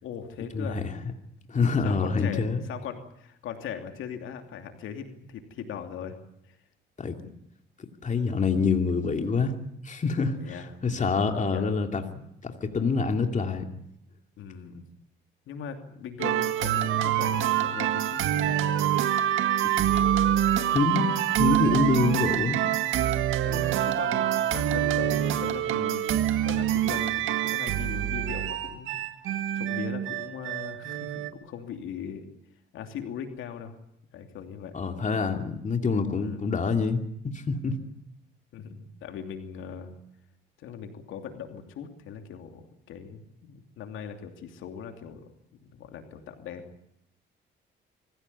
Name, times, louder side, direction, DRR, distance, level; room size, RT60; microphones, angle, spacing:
voice 1, 0.0-0.8 1.8-6.1 6.5-6.6 10.4-11.6 14.4-14.8 15.5-18.6 23.4-26.2 26.4-28.9 29.5-32.2 32.7-33.7 34.1-34.7 36.2-36.4 38.5-39.9 40.6-45.3 45.6-46.6, left 7 dB, 85° left, 5 dB, 2.9 m, -40 dB
voice 2, 0.5-0.9 1.5-2.6 7.0-7.2 8.0-9.5 9.8-13.7 20.7-21.1 21.4-22.6 34.7-37.8, left 4 dB, 40° left, 5 dB, 2.6 m, -26 dB
sound 1, 16.2-31.3, right 11 dB, 85° right, 1.7 m, -26 dB
24.5 x 15.5 x 9.6 m, 0.78 s
cardioid pair, 90°, 20 cm